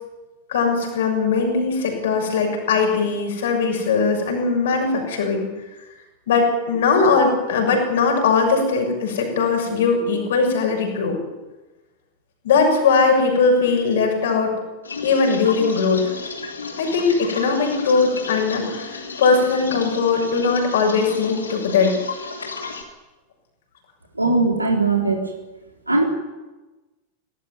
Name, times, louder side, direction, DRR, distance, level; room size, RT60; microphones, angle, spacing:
voice 1, 0.5-5.5 6.3-11.2 12.4-14.5 15.0-16.1 16.8-21.9, left 4 dB, 60° left, 3 dB, 6.7 m, -20 dB
sound 1, 14.8-22.8, left 4 dB, 75° left, 3.2 m, -33 dB
voice 2, 24.2-25.3 25.9-26.0, right 3 dB, 85° right, 2 dB, 3.9 m, -19 dB
18.5 x 18.0 x 9.5 m, 1.1 s
figure-of-eight pair, 90°, 0 cm